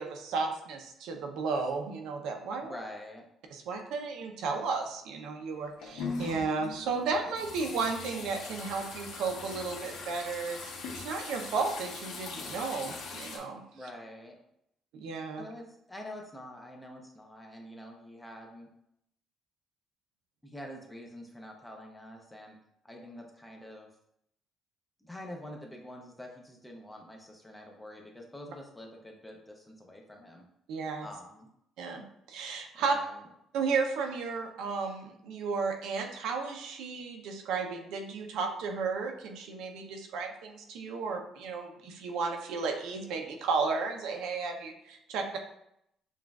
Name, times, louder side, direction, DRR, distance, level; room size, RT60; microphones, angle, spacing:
voice 1, 0.0-2.8 3.5-10.7 11.0-13.6 14.9-15.5 30.7-31.1 31.8-32.9 33.5-45.4, right 4 dB, 80° right, 4 dB, 0.6 m, -33 dB
voice 2, 2.6-3.3 13.7-14.4 15.4-18.7 20.4-22.6 22.8-23.9 25.0-30.5 31.0-31.5 32.7-33.2, left 1 dB, 5° left, 1 dB, 0.5 m, -46 dB
sound 1, 5.6-13.4, left 4 dB, 80° left, 1.0 m, -41 dB
7.0 x 2.4 x 2.3 m, 0.77 s
cardioid pair, 175°, 0 cm